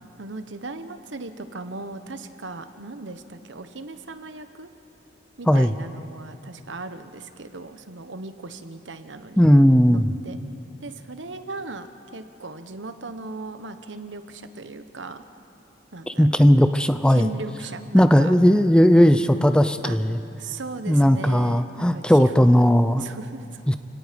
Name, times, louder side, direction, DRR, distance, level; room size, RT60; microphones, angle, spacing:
voice 1, 0.2-4.7 5.4-9.4 9.9-10.4 10.8-11.9 12.1-15.2 15.9-16.5 17.1-18.3 19.8-20.0 20.4-22.6 23.0-23.6, right 3 dB, 80° right, 10 dB, 1.1 m, -37 dB
voice 2, 9.4-10.1 16.1-17.3 17.9-20.2 20.9-23.0 23.7-23.8, equal, 5° left, 10 dB, 0.5 m, -17 dB
29.0 x 17.5 x 5.2 m, 2.7 s
head